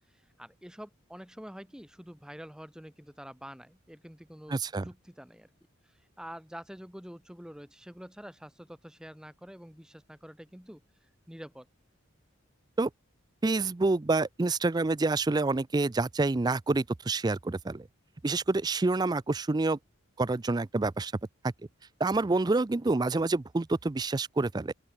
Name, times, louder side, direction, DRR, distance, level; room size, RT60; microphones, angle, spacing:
voice 1, 0.1-5.5 5.8-11.7, equal, 5° right, 1.3 m, -47 dB
voice 2, 4.5-4.8 12.8-12.9 13.4-17.9 18.2-19.8 20.2-21.1 21.4-21.5 22.0-24.7, right 3 dB, 20° right, 0.4 m, -27 dB
open air
head